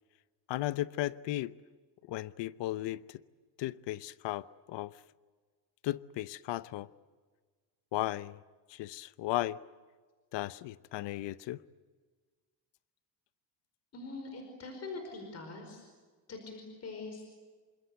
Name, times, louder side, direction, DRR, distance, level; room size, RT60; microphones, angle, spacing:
voice 1, 0.5-1.5 2.1-3.2 3.6-5.0 5.8-6.9 7.9-8.4 8.7-9.6 10.3-11.6, left 15 dB, 75° left, 0.9 m, -35 dB
voice 2, 13.9-15.8 16.3-17.4, left 3 dB, 35° left, 5.1 m, -43 dB
28.5 x 26.0 x 8.1 m
cardioid pair, 175°, 43 cm